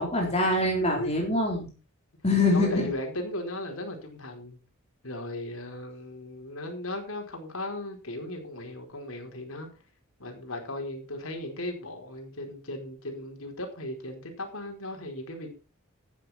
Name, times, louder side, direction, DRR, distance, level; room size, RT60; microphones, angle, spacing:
voice 1, 0.0-1.7 2.2-2.8, left 2 dB, 30° left, -1 dB, 3.9 m, -24 dB
voice 2, 0.8-1.2 2.5-4.6 5.0-9.7 10.2-15.5, left 1 dB, 75° left, 3 dB, 4.7 m, -37 dB
14.5 x 10.0 x 4.4 m, 0.32 s
head